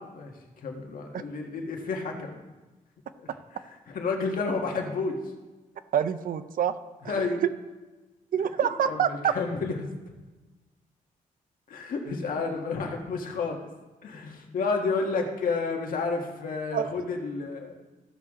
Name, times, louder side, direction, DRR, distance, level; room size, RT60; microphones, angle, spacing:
voice 1, 0.0-2.4 3.2-5.2 7.1-7.4 8.9-9.9 11.7-13.6 14.0-17.7, left 4 dB, 75° left, 2 dB, 1.6 m, -31 dB
voice 2, 5.9-6.7 7.1-7.2 8.3-9.3 16.7-16.9, right 8 dB, 75° right, 12 dB, 0.6 m, -26 dB
15.0 x 6.3 x 3.7 m, 1.2 s
wide cardioid pair, 115°, 14 cm